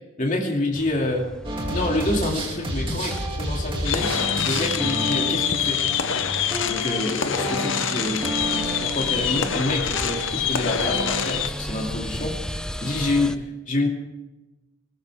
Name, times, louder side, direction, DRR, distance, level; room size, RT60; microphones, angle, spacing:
voice 1, 0.2-1.3 1.7-4.1 4.5-5.9 6.6-13.9, left 2 dB, 35° left, -1 dB, 2.7 m, -27 dB
sound 1, 0.8-13.4, equal, 5° left, 0.4 m, -36 dB
sound 2, 1.4-11.3, equal, 25° right, 2.7 m, -31 dB
sound 3, 3.8-11.5, left 8 dB, 60° left, 0.8 m, -26 dB
20.0 x 19.0 x 3.6 m, 1.0 s
head